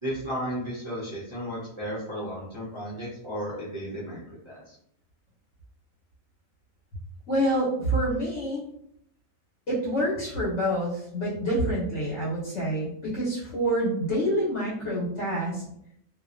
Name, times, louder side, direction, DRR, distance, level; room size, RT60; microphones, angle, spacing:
voice 1, 0.0-4.8, equal, 45° right, -7 dB, 0.4 m, -34 dB
voice 2, 7.3-8.6 9.7-15.6, right 1 dB, 60° left, -8 dB, 1.1 m, -27 dB
2.6 x 2.2 x 2.3 m, 0.71 s
omnidirectional pair, 1.4 m